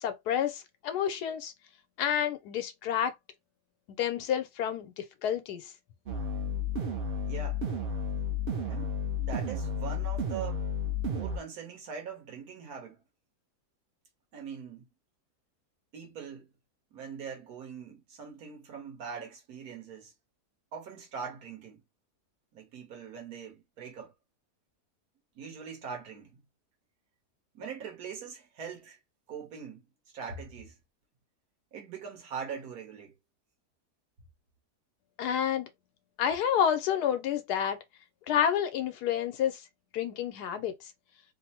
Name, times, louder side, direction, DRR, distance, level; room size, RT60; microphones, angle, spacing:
voice 1, 0.0-1.5 2.0-3.1 4.0-5.7 35.2-35.7 36.2-37.8 38.3-39.6 39.9-40.8, left 9 dB, 90° left, 1.2 m, -29 dB
sound 1, 6.1-11.4, left 3 dB, 55° right, 0.6 m, -32 dB
voice 2, 7.3-7.7 8.7-10.7 11.1-13.0 14.3-14.9 15.9-16.5 16.9-20.1 20.7-21.8 22.5-24.1 25.4-26.4 27.5-29.0 29.3-29.9 30.1-30.8 31.7-33.2, right 6 dB, 75° right, 1.4 m, -42 dB
3.3 x 2.0 x 2.8 m
omnidirectional pair, 1.7 m